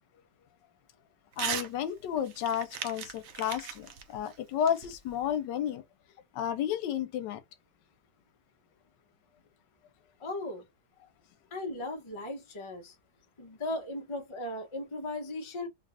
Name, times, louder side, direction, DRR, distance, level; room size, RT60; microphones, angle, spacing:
Crumpling crinkling / Tearing, 1.3-1.7 2.0-5.4, right 8 dB, 75° right, 0.6 m, -38 dB
voice 1, 1.4-5.8 6.3-7.4, left 9 dB, 80° left, 1.3 m, -32 dB
voice 2, 10.2-10.6 11.5-12.9 13.4-15.7, left 2 dB, 25° left, 0.6 m, -37 dB
3.1 x 3.0 x 2.5 m
omnidirectional pair, 1.9 m